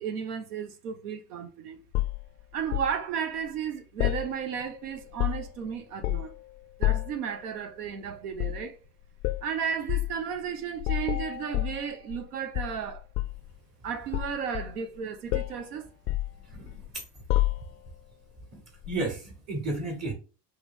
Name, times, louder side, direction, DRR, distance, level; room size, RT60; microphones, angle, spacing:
voice 1, 0.0-1.8 2.5-6.3 6.8-8.8 9.4-13.0 13.8-15.9, right 7 dB, 70° right, 0.7 m, -34 dB
sound 1, 1.9-2.9 4.0-4.7 5.0-5.6 6.0-6.4 6.8-7.2 8.3-8.7 9.2-9.5 9.9-10.1 10.8-12.3 12.5-13.5 14.1-15.0 15.3-15.6 16.1-16.9 17.3-17.9 18.8-19.0, left 16 dB, 30° left, 0.4 m, -29 dB
voice 2, 16.4-16.9 18.5-20.1, right 2 dB, 35° right, 1.4 m, -33 dB
3.5 x 3.1 x 3.6 m
figure-of-eight pair, 65°, 47 cm